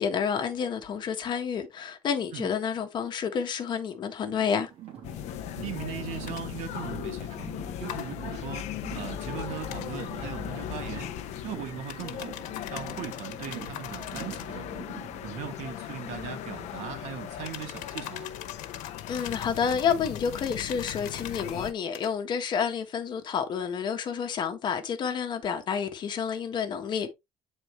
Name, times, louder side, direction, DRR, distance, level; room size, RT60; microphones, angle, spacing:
voice 1, 0.0-4.7 19.1-27.1, left 7 dB, 35° left, 1.3 m, -29 dB
Car, 4.2-15.3, right 10 dB, 50° right, 2.9 m, -46 dB
sound 1, 5.0-21.7, left 11 dB, 65° left, 0.7 m, -38 dB
voice 2, 5.6-11.1 11.4-12.3 12.7-14.8 15.2-18.3, right 9 dB, 70° right, 2.2 m, -39 dB
sound 2, 6.3-6.4 7.9-8.1 9.7-9.9 11.9-14.5 17.4-21.6 21.9-22.1, left 12 dB, 85° left, 1.3 m, -42 dB
9.0 x 4.3 x 3.2 m
cardioid pair, 175°, 12 cm